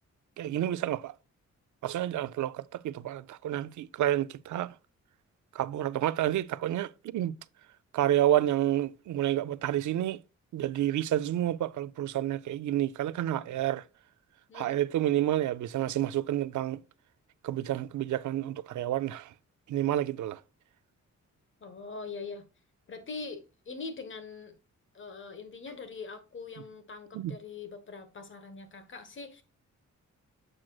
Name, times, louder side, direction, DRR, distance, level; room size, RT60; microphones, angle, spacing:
voice 1, 0.4-1.1 1.8-4.7 5.5-7.3 7.9-10.2 10.5-13.8 14.5-16.8 17.4-19.3 19.7-20.4 27.1-27.3, right 12 dB, 80° right, 0.5 m, -29 dB
voice 2, 21.6-22.4 22.9-24.5 24.9-29.4, left 4 dB, 40° left, 1.2 m, -42 dB
7.4 x 6.2 x 2.3 m
wide cardioid pair, 175°, 30 cm